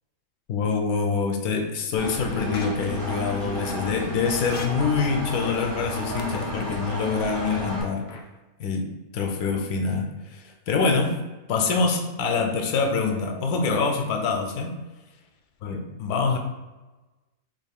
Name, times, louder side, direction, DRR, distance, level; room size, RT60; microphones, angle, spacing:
voice 1, 0.5-8.1 8.6-11.2 11.5-14.7 15.6-16.4, left 4 dB, 85° left, 3 dB, 1.1 m, -25 dB
Engine, 2.0-7.8, left 1 dB, 70° right, 1.8 m, -32 dB
sound 1, 2.5-2.7 4.4-4.6 6.2-6.3 8.1-8.2, left 5 dB, 65° left, 0.6 m, -38 dB
3.7 x 2.4 x 3.5 m, 1.2 s
omnidirectional pair, 1.5 m